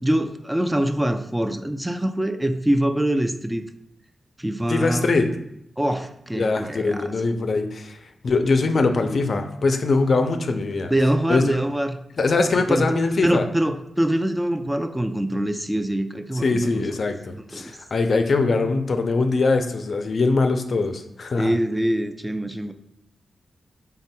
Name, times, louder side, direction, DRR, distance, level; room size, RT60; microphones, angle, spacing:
voice 1, 0.0-3.6 4.4-5.1 5.8-7.1 10.9-12.0 12.7-13.0 13.2-16.9 17.5-17.8 21.4-22.7, right 1 dB, 15° right, 7 dB, 0.4 m, -24 dB
voice 2, 4.7-5.3 6.3-8.0 8.2-10.9 11.3-11.6 12.2-13.5 16.4-21.5, left 3 dB, 60° left, 6 dB, 0.4 m, -22 dB
4.1 x 3.6 x 2.2 m, 0.78 s
supercardioid pair, 40°, 0 cm